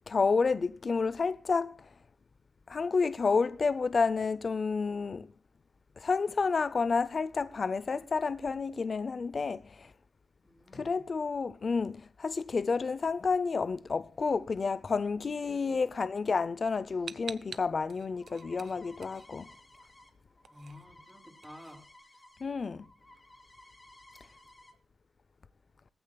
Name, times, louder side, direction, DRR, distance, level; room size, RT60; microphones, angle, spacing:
voice 1, 0.1-1.9 2.7-5.3 6.0-9.9 10.7-19.5 22.4-22.9, left 4 dB, 40° left, 0.5 m, -30 dB
voice 2, 10.4-11.0 15.4-15.7 20.5-21.9, left 1 dB, 5° right, 3.2 m, -52 dB
sound 1, 17.1-19.8 20.1-22.4, right 6 dB, 55° right, 0.8 m, -47 dB
sound 2, 17.9-22.4 22.7-24.7, left 1 dB, 20° left, 2.5 m, -57 dB
20.5 x 15.0 x 2.3 m
wide cardioid pair, 145°, 0 cm